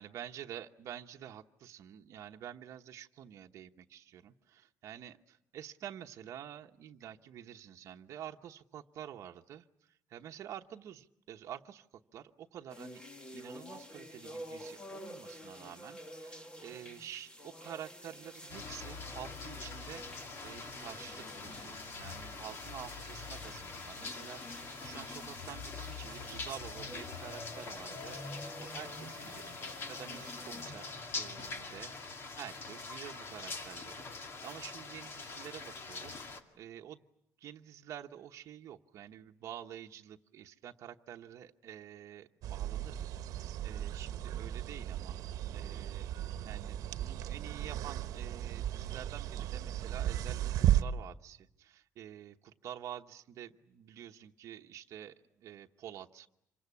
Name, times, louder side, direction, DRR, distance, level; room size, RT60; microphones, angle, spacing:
voice 1, 0.0-11.9 12.1-13.0 13.3-31.9 32.3-37.0 37.4-56.3, right 10 dB, 60° right, 4 dB, 1.0 m, -49 dB
sound 1, 12.7-30.7, equal, 15° left, 1.8 m, -50 dB
sound 2, 18.5-36.4, left 3 dB, 45° left, 2.1 m, -44 dB
sound 3, 42.4-50.8, right 12 dB, 85° right, 1.0 m, -35 dB
27.0 x 24.0 x 8.4 m, 0.78 s
cardioid pair, 170°, 6 cm